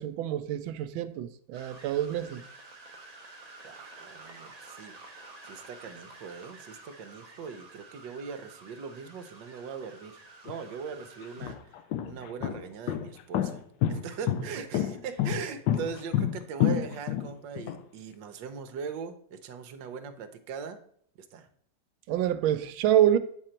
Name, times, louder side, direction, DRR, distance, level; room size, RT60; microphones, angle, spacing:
voice 1, 0.0-2.4 22.1-23.2, right 11 dB, 90° right, 1.4 m, -26 dB
sound 1, 1.5-11.5, right 2 dB, 40° right, 0.5 m, -50 dB
voice 2, 3.6-5.0 5.4-13.6 13.9-20.8 21.3-21.5, right 6 dB, 70° right, 1.3 m, -40 dB
sound 2, 10.5-10.6 11.2-17.8, left 11 dB, 75° left, 1.3 m, -28 dB
9.1 x 3.8 x 4.4 m
omnidirectional pair, 2.1 m